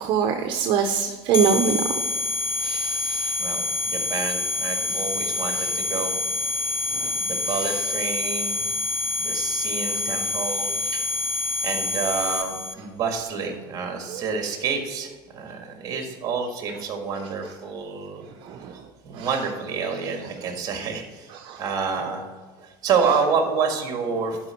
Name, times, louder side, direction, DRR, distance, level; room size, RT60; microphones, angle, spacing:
voice 1, 0.0-1.9 2.6-3.4 5.5-5.7 6.9-7.1 7.5-7.9 14.1-14.2 18.4-18.8 19.1-19.3 21.3-21.6, right 7 dB, 50° right, 4 dB, 0.7 m, -25 dB
sound 1, 1.3-12.7, left 3 dB, 20° left, 0.5 m, -27 dB
voice 2, 3.4-6.1 7.2-8.6 9.2-11.0 11.6-18.2 19.0-21.3 21.6-22.2 22.8-24.4, right 5 dB, 35° right, 3 dB, 1.8 m, -28 dB
11.5 x 5.3 x 4.5 m, 1.5 s
cardioid pair, 150°, 11 cm